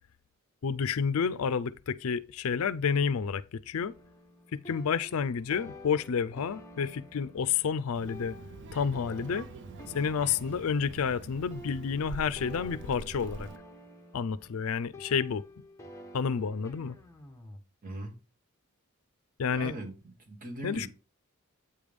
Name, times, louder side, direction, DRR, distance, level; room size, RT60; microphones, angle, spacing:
voice 1, 0.6-3.9 4.7-8.4 8.7-9.5 9.9-13.5 14.1-15.4 16.1-17.0 19.4-19.7 20.6-20.9, left 6 dB, 70° left, 0.4 m, -30 dB
sound 1, 3.8-17.6, left 1 dB, 15° left, 0.8 m, -50 dB
Child speech kid speaking, 7.9-13.6, right 3 dB, 55° right, 0.4 m, -45 dB
voice 2, 17.8-18.1 19.5-20.9, right 1 dB, 40° right, 1.7 m, -40 dB
8.6 x 3.4 x 5.1 m
head